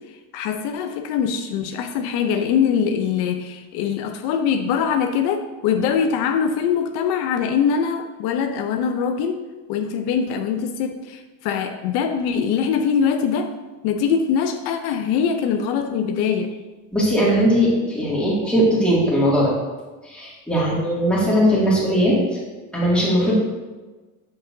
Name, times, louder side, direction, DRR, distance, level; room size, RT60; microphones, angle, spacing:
voice 1, 0.0-9.4 9.7-13.6 13.8-16.5 20.5-20.7, left 7 dB, 70° left, 6 dB, 0.7 m, -23 dB
voice 2, 16.9-19.5 20.1-22.2 22.7-23.4, equal, 5° left, -7 dB, 2.2 m, -19 dB
8.4 x 7.6 x 2.6 m, 1.2 s
cardioid pair, 170°, 39 cm